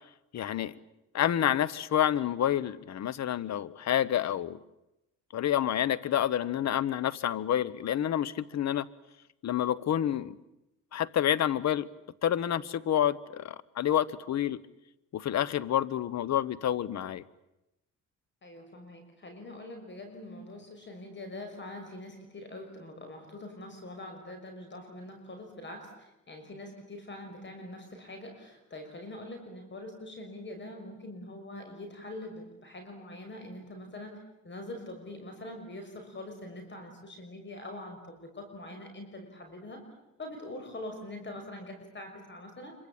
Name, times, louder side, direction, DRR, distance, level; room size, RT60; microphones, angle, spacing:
voice 1, 0.3-0.7 1.1-4.6 5.3-8.9 9.4-10.3 10.9-11.9 12.2-14.6 15.1-17.2, left 10 dB, 60° left, 1.2 m, -28 dB
voice 2, 18.4-25.9 26.3-39.8 40.2-42.7, left 1 dB, 40° left, 6.2 m, -44 dB
26.0 x 24.5 x 8.9 m
cardioid pair, 90°, 30 cm